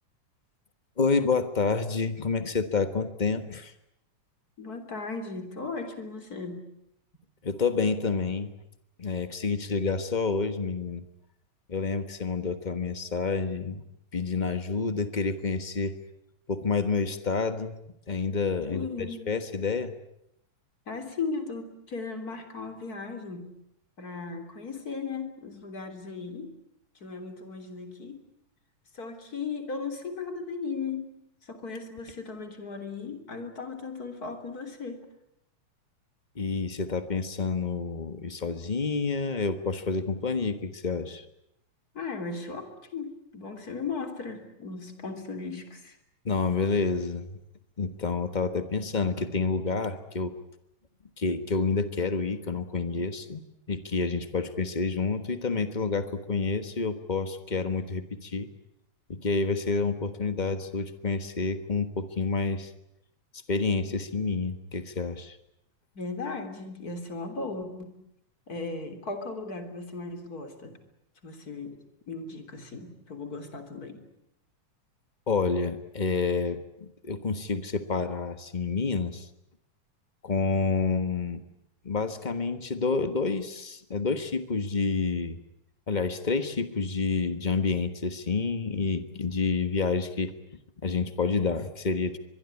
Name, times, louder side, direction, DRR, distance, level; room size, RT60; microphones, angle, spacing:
voice 1, 1.0-3.7 7.4-8.5 9.0-11.0 11.7-13.8 14.1-16.0 16.5-17.8 18.1-19.9 36.3-41.2 46.2-47.3 47.8-50.4 51.2-53.4 53.7-58.5 59.1-62.7 63.5-65.4 75.3-79.3 80.2-81.4 81.8-85.4 85.9-90.3 90.8-92.2, left 4 dB, 75° left, 10 dB, 0.4 m, -28 dB
voice 2, 4.6-6.6 18.7-19.2 20.9-23.5 24.0-26.5 27.0-28.2 28.9-31.1 31.4-35.0 41.9-46.0 66.0-68.0 68.5-70.8 71.2-71.8 72.1-74.0, left 4 dB, 30° left, 8 dB, 3.7 m, -37 dB
25.0 x 21.5 x 9.8 m, 0.78 s
omnidirectional pair, 3.3 m